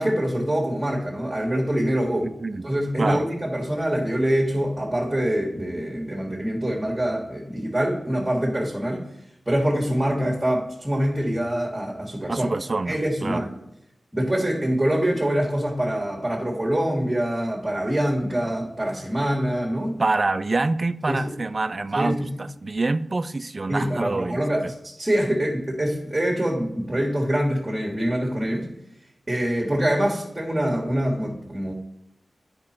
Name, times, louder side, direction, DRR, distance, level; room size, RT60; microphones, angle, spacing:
voice 1, 0.0-2.3 2.6-9.0 9.4-12.5 12.9-13.5 14.1-20.0 21.1-21.3 21.9-22.4 23.7-28.7 29.3-31.7, equal, 20° right, -3 dB, 1.7 m, -25 dB
voice 2, 2.2-2.6 3.0-3.3 12.3-13.5 20.0-24.7, right 3 dB, 45° right, 13 dB, 0.3 m, -26 dB
9.7 x 5.1 x 4.3 m, 0.81 s
cardioid pair, 60°, 0 cm